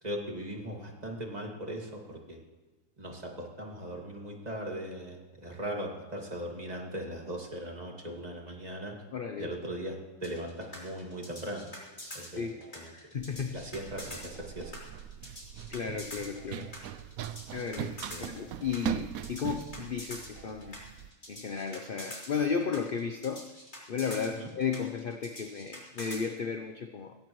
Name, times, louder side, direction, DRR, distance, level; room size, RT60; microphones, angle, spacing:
voice 1, 0.0-2.4 3.0-8.9 9.4-11.7 12.1-12.4 12.7-12.9 13.5-14.8 18.1-18.3 24.4-24.5, right 1 dB, 25° right, 0 dB, 2.2 m, -39 dB
voice 2, 9.1-9.5 12.4-12.6 12.9-13.6 15.7-16.7 17.5-20.8 21.3-23.5 23.9-27.2, left 6 dB, 50° left, 6 dB, 0.7 m, -34 dB
sound 1, 10.2-26.2, left 1 dB, 30° left, 3.8 m, -45 dB
Run, 13.2-21.1, right 10 dB, 70° right, 1.0 m, -40 dB
17.5 x 16.5 x 3.1 m, 1.2 s
omnidirectional pair, 1.6 m